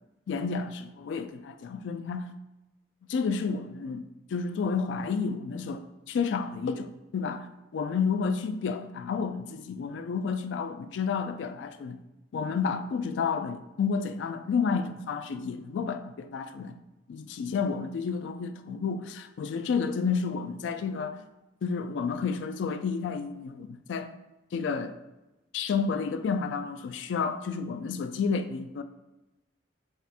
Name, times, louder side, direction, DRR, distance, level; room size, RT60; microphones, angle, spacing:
voice 1, 0.3-2.3 3.1-6.9 7.1-7.5 7.7-12.0 12.3-16.8 17.1-21.3 21.6-24.1 24.5-24.9 25.5-28.8, left 5 dB, 75° left, 0.3 m, -31 dB
4.2 x 2.4 x 3.4 m
head